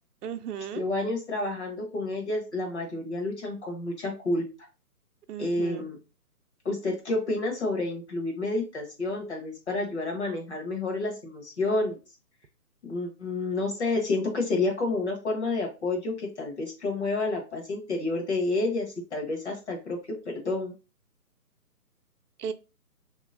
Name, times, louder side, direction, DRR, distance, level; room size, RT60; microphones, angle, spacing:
voice 1, 0.2-0.8 5.3-5.9 22.4-22.5, right 7 dB, 75° right, 0.6 m, -35 dB
voice 2, 0.7-4.4 5.4-6.0 6.6-12.0 12.8-20.0 20.2-20.7, left 2 dB, 45° left, 1.2 m, -29 dB
3.1 x 2.9 x 2.5 m
hypercardioid pair, 170°, 47 cm